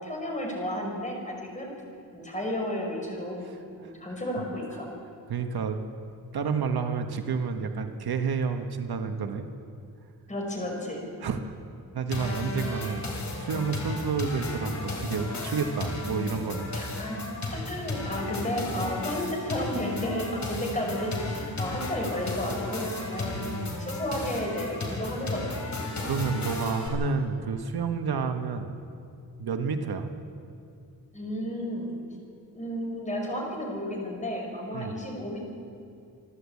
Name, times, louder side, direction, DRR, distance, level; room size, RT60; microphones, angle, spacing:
voice 1, 0.0-1.7 2.1-3.4 3.7-4.9 10.3-11.0 12.2-12.3 16.7-17.2 17.5-25.6 31.1-32.0 32.5-35.5, left 1 dB, 20° left, 0 dB, 5.2 m, -32 dB
voice 2, 3.4-3.9 5.3-5.8 6.3-9.5 11.2-11.5 11.9-13.1 13.3-16.7 23.2-23.8 26.0-28.7 29.4-30.1 34.7-35.0, right 5 dB, 70° right, 6 dB, 1.4 m, -30 dB
sound 1, 12.1-26.9, left 2 dB, 45° left, 4.1 m, -34 dB
27.0 x 11.5 x 8.5 m, 2.4 s
wide cardioid pair, 140°, 39 cm